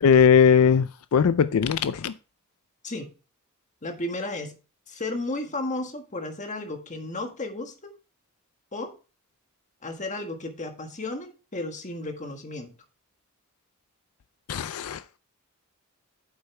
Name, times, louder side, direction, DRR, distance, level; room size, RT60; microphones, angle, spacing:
voice 1, 0.0-2.1 14.5-15.0, left 7 dB, 75° left, 13 dB, 0.4 m, -19 dB
voice 2, 3.8-4.6 4.9-7.9 8.7-8.9 9.8-12.7, left 2 dB, 35° left, 5 dB, 1.5 m, -33 dB
9.3 x 7.8 x 3.3 m, 0.33 s
head